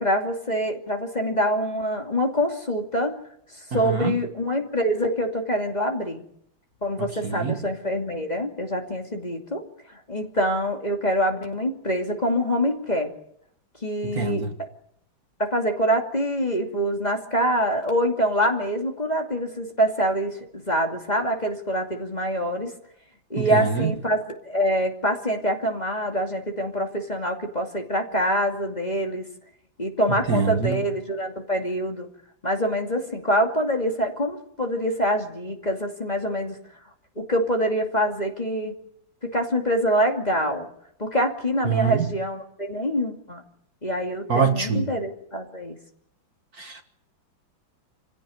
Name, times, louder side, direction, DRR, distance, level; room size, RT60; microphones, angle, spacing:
voice 1, 0.0-3.2 3.7-6.2 6.8-9.6 10.1-13.1 13.8-14.4 15.4-22.7 23.3-29.2 29.8-32.1 32.4-36.6 37.2-38.7 39.3-40.7 41.0-43.4 43.8-45.8, equal, 20° left, 2.6 m, -25 dB
voice 2, 3.7-4.1 7.2-7.6 14.0-14.5 23.4-23.9 30.3-30.8 41.6-42.1 44.3-44.9 46.6-46.8, right 6 dB, 50° right, 2.0 m, -24 dB
26.5 x 16.5 x 9.4 m
omnidirectional pair, 2.1 m